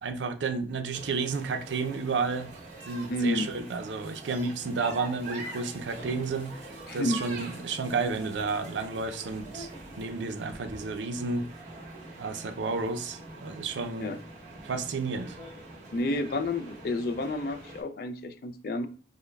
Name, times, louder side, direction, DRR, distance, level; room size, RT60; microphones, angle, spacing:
voice 1, 0.0-2.5 2.9-6.6 6.9-9.7 10.0-11.5 12.2-14.1 14.6-15.4, right 4 dB, 90° right, 0.5 m, -31 dB
sound 1, 0.9-17.8, right 2 dB, 40° right, 1.5 m, -44 dB
voice 2, 3.1-3.5 6.9-7.2 14.0-14.2 15.9-18.9, left 1 dB, 55° left, 0.3 m, -30 dB
5.2 x 2.1 x 2.2 m
head